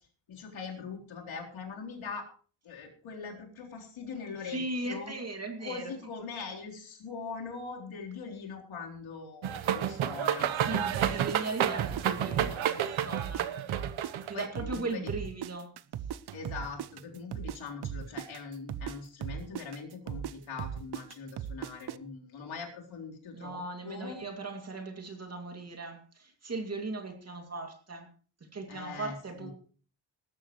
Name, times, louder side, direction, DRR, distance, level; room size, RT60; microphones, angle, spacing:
voice 1, 0.3-2.3 2.6-5.1 5.6-10.5 14.3-15.0 16.3-24.2 28.7-29.1 29.4-29.5, left 5 dB, 75° left, -1 dB, 4.0 m, -42 dB
voice 2, 4.4-5.9 10.6-13.5 14.2-15.7 23.3-28.1 28.5-29.5, right 3 dB, 30° right, 4 dB, 2.5 m, -38 dB
sound 1, 9.4-14.5, right 9 dB, 75° right, 1.1 m, -30 dB
sound 2, 10.9-13.4 13.7-17.6 17.8-22.0, right 9 dB, 55° right, 0.6 m, -38 dB
19.0 x 13.5 x 3.2 m, 0.41 s
wide cardioid pair, 155°, 47 cm